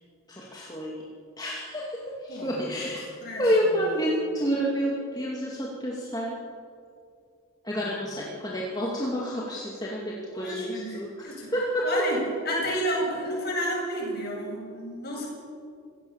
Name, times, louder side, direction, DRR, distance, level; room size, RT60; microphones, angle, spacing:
voice 1, 0.3-1.0 1.4-1.9 2.2-3.1 3.4-6.3 7.6-11.8, equal, 20° left, -4 dB, 2.4 m, -29 dB
voice 2, 3.2-3.8 7.7-7.9 10.3-11.5 11.8-12.2 12.4-15.3, equal, 50° left, -2 dB, 7.9 m, -31 dB
26.5 x 16.5 x 7.2 m, 2.4 s
head